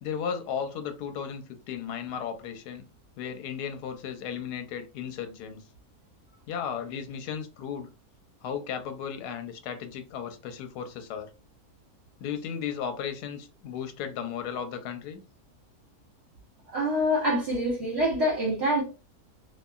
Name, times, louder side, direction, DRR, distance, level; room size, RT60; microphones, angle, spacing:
voice 1, 0.0-2.8 3.2-5.6 6.5-7.9 8.4-11.3 12.2-15.2, left 7 dB, 85° left, 1.1 m, -35 dB
voice 2, 16.7-18.8, equal, 50° right, 0.9 m, -25 dB
2.9 x 2.5 x 2.2 m
omnidirectional pair, 1.7 m